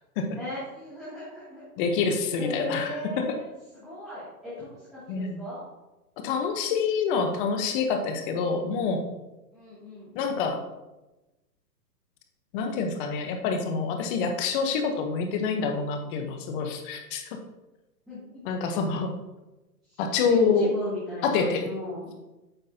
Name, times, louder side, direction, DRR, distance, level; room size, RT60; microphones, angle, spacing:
voice 1, 0.3-1.6 2.4-5.6 9.5-10.2 18.1-18.4 19.9-22.1, left 1 dB, ahead, -12 dB, 2.6 m, -37 dB
voice 2, 1.8-3.3 5.1-5.4 6.2-9.1 10.1-10.6 12.5-17.2 18.4-19.1 20.0-20.7 21.2-21.7, left 5 dB, 35° left, 5 dB, 1.1 m, -26 dB
9.0 x 6.4 x 2.9 m, 1.0 s
hypercardioid pair, 135°, 47 cm